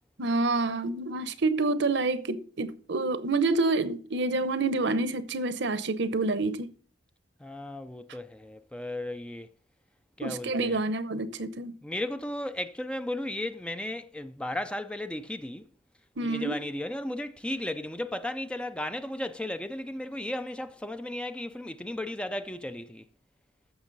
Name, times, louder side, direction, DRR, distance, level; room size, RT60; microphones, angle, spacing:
voice 1, 0.2-6.7 10.2-11.8 16.2-16.6, right 3 dB, 60° right, 0.8 m, -28 dB
voice 2, 7.4-9.5 10.2-10.8 11.8-15.7 16.2-23.0, left 1 dB, 5° left, 0.4 m, -35 dB
14.5 x 6.2 x 4.0 m
head